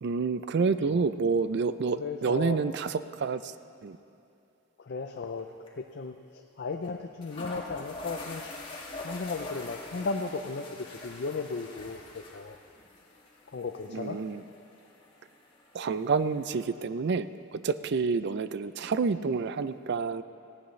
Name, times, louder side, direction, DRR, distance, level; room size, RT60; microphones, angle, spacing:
voice 1, 0.0-3.5 3.8-4.0 13.9-14.4 15.7-20.2, right 4 dB, 60° right, 13 dB, 0.4 m, -28 dB
voice 2, 2.0-2.6 4.8-5.5 5.8-8.5 9.0-12.6 13.5-14.2, left 4 dB, 55° left, 5 dB, 0.5 m, -35 dB
sound 1, 5.2-5.4 5.7-5.8 6.8-6.9 7.2-16.6, left 2 dB, 25° left, 1.8 m, -45 dB
18.0 x 15.5 x 3.2 m, 2.6 s
head